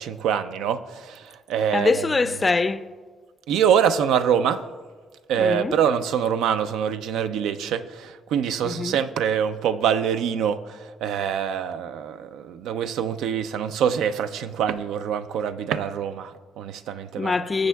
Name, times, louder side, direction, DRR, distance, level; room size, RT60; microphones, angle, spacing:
voice 1, 0.0-2.1 3.5-4.6 5.3-17.3, right 8 dB, 85° right, 0.4 m, -25 dB
voice 2, 1.7-2.8 5.4-5.8 8.6-9.0 17.2-17.7, left 4 dB, 25° left, 0.4 m, -23 dB
20.0 x 7.3 x 2.3 m
cardioid pair, 90°, 0 cm